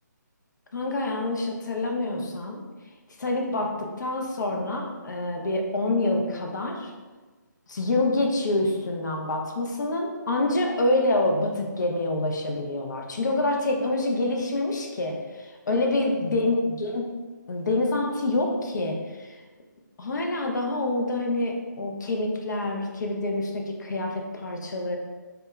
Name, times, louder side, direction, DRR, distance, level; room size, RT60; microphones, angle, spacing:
voice 1, 0.7-2.6 3.2-6.9 7.7-17.1 17.5-19.4 20.0-25.0, left 2 dB, 65° left, 1 dB, 0.5 m, -26 dB
2.8 x 2.2 x 2.2 m, 1.3 s
hypercardioid pair, 170°, 11 cm